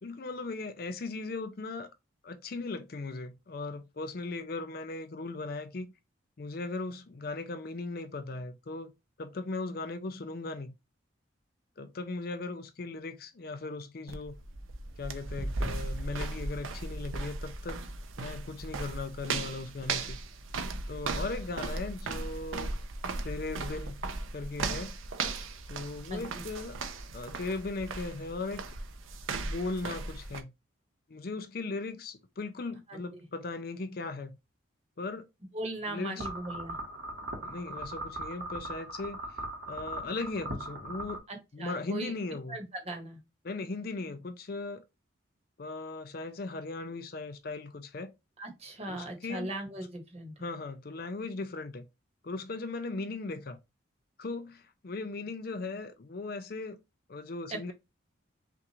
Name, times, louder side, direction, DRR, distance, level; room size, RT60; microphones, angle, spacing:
voice 1, 0.0-1.9 2.2-5.9 6.4-8.9 9.2-10.7 11.8-14.4 15.0-17.8 18.2-20.2 20.9-22.7 23.2-24.0 24.3-25.0 25.7-26.8 27.1-28.7 29.3-30.5 31.1-34.4 35.0-35.3 35.9-36.3 37.4-39.4 39.7-41.2 41.5-42.6 43.4-44.8 45.6-48.1 48.8-49.5 50.4-51.9 52.2-53.6 54.2-56.8 57.1-57.7, left 3 dB, 50° left, 0.5 m, -38 dB
sound 1, 14.1-30.4, right 3 dB, 90° right, 0.7 m, -37 dB
voice 2, 26.1-26.4 32.9-33.0 35.5-36.8 41.3-42.1 42.5-43.2 48.4-50.3 57.5-57.6, right 1 dB, 30° right, 1.2 m, -38 dB
sound 2, 36.2-41.2, right 1 dB, 65° right, 1.4 m, -39 dB
5.7 x 2.5 x 2.9 m
head